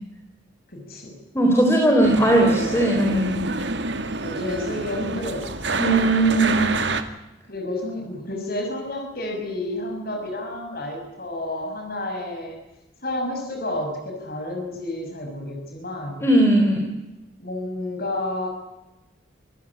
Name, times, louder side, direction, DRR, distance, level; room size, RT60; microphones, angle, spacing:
voice 1, 0.7-1.1 2.4-2.9 4.2-5.8 7.5-12.5 13.0-16.2 17.4-18.5, left 1 dB, 50° left, 2 dB, 6.4 m, -30 dB
voice 2, 1.3-3.4 5.8-6.7 16.2-16.9, right 1 dB, 15° left, 1 dB, 4.3 m, -18 dB
sound 1, 2.0-7.0, right 3 dB, 60° right, 2.1 m, -27 dB
26.0 x 16.5 x 9.9 m, 0.99 s
head